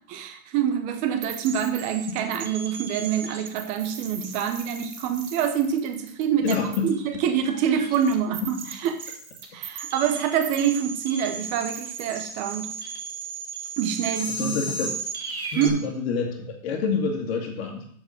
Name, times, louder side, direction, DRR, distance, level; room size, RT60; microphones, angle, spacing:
voice 1, 0.1-6.6 6.8-6.9 7.2-9.0 9.5-12.7 13.8-14.9 15.6-15.8, right 8 dB, 15° right, 8 dB, 0.7 m, -26 dB
sound 1, 1.2-15.7, right 4 dB, 90° right, 2.8 m, -36 dB
voice 2, 6.4-7.2 8.4-8.5 14.3-14.9 15.5-17.9, left 4 dB, 45° left, 0 dB, 2.0 m, -28 dB
7.1 x 7.0 x 6.4 m, 0.62 s
hypercardioid pair, 160°, 42 cm